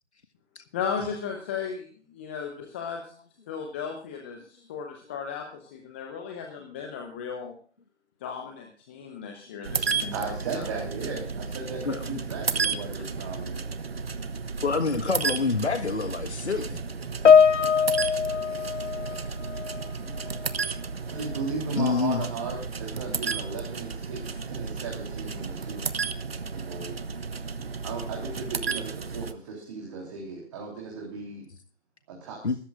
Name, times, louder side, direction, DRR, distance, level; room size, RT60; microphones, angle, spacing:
voice 1, 0.7-3.1 3.5-7.5 8.2-10.1 10.5-10.7, left 6 dB, 10° left, 3 dB, 0.8 m, -35 dB
sound 1, 9.6-29.3, right 5 dB, 55° right, 1.1 m, -33 dB
voice 2, 9.8-13.6 21.1-25.9 26.5-27.0 27.8-31.4 32.1-32.4, right 4 dB, 25° right, -1 dB, 3.6 m, -36 dB
voice 3, 11.8-12.2 12.7-12.8 14.6-16.8 20.0-20.2 21.7-22.3 32.4-32.6, left 4 dB, 70° left, 9 dB, 1.6 m, -27 dB
Piano, 17.3-19.9 20.2-20.5 21.3-21.4, left 6 dB, 90° left, 0.5 m, -21 dB
20.5 x 14.0 x 2.4 m, 0.43 s
figure-of-eight pair, 145°, 35 cm